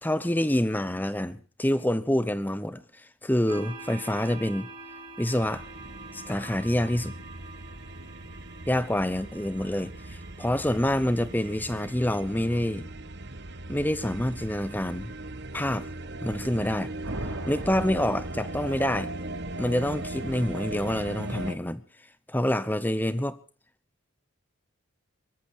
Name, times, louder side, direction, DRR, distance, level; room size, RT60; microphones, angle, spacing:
voice 1, 0.0-2.8 3.2-4.7 5.2-5.6 6.1-7.1 8.7-12.9 13.7-15.1 15.5-15.8 16.2-16.9 17.5-19.1 19.6-21.8 22.3-23.4, left 1 dB, 10° left, 0.9 m, -27 dB
sound 1, 3.5-11.7, right 3 dB, 25° right, 5.6 m, -46 dB
sound 2, 5.4-21.5, right 2 dB, 55° right, 1.3 m, -39 dB
sound 3, 17.0-19.2, right 1 dB, 75° right, 3.9 m, -38 dB
23.5 x 13.5 x 4.5 m
head